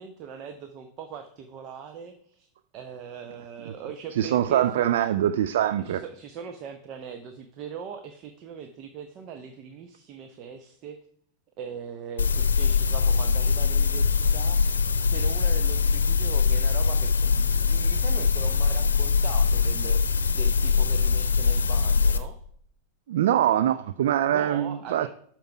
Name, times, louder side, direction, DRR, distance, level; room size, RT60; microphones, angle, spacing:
voice 1, 0.0-2.5 2.7-4.8 5.8-11.0 11.6-22.4 24.3-25.1, right 7 dB, 35° right, 0.8 m, -40 dB
voice 2, 4.2-6.0 23.1-25.1, right 11 dB, 55° right, 0.4 m, -23 dB
sound 1, 12.2-22.2, left 5 dB, 70° left, 0.7 m, -22 dB
11.5 x 4.5 x 5.8 m
figure-of-eight pair, 90°, 0 cm